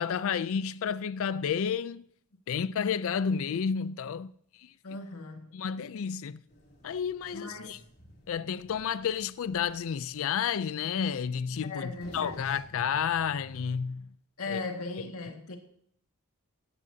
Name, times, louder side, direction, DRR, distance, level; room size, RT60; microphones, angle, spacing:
voice 1, 0.0-2.0 2.5-4.3 4.6-4.7 5.5-6.4 6.8-7.8 8.3-14.1 14.5-14.6, left 7 dB, 65° left, 0.4 m, -31 dB
voice 2, 4.8-5.5 7.3-7.8 11.6-12.6 14.4-15.6, left 3 dB, 85° left, 1.8 m, -38 dB
sound 1, 6.5-13.8, equal, 50° left, 2.9 m, -54 dB
16.0 x 15.0 x 2.8 m
head